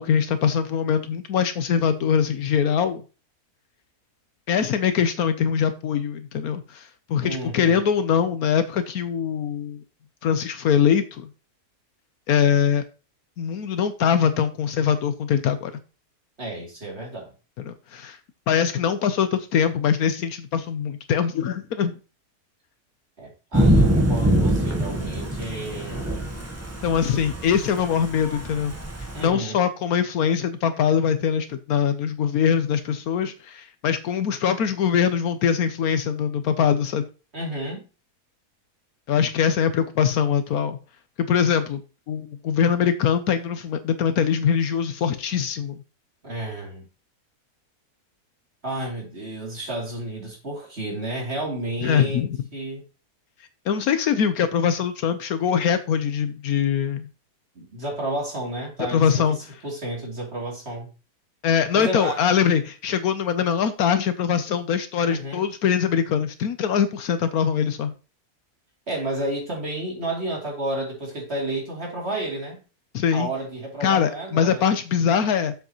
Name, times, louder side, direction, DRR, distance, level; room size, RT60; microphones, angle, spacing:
voice 1, 0.0-3.0 4.5-9.8 10.2-11.3 12.3-12.8 13.4-15.7 17.6-18.2 18.5-21.9 26.8-28.7 29.2-37.1 39.1-40.8 41.3-41.8 42.1-45.8 51.8-52.4 53.7-57.1 58.9-59.4 61.4-67.9 72.9-73.3 73.8-75.5, left 7 dB, 70° left, 1.2 m, -22 dB
voice 2, 7.2-7.8 16.4-17.3 23.2-26.2 29.1-29.6 37.3-37.8 46.2-46.8 48.6-52.2 52.5-52.8 57.5-59.4 59.6-60.9 61.7-62.3 65.0-65.4 68.9-72.6 73.1-74.6, right 1 dB, 40° right, 3.1 m, -31 dB
Thunder / Rain, 23.5-29.3, equal, 10° right, 0.9 m, -24 dB
7.8 x 7.2 x 3.0 m
omnidirectional pair, 1.6 m